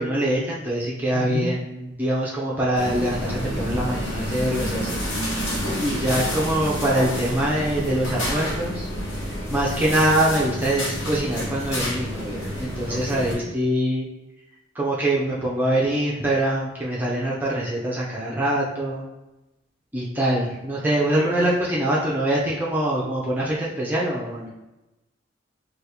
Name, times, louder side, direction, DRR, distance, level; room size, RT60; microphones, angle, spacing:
voice 1, 0.0-5.0 5.8-8.9 9.5-14.1 14.8-19.0 19.9-24.5, right 1 dB, 10° right, -6 dB, 0.5 m, -24 dB
voice 2, 1.1-1.5 5.6-6.3 12.9-13.4 21.2-21.5, left 2 dB, 40° left, -4 dB, 0.8 m, -33 dB
sound 1, 2.7-13.3, equal, 70° left, 1.1 m, -29 dB
3.4 x 2.3 x 2.9 m, 0.99 s
head